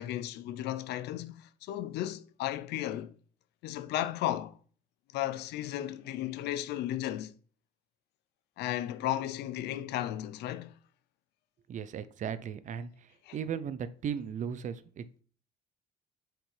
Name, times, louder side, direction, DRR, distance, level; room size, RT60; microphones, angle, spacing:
voice 1, 0.0-3.1 3.6-4.6 5.1-7.3 8.6-10.7 13.2-13.4, left 13 dB, 80° left, 0.6 m, -34 dB
voice 2, 11.7-12.9 13.3-15.2, right 7 dB, 45° right, 0.6 m, -36 dB
5.9 x 5.2 x 3.3 m
cardioid pair, 110°, 17 cm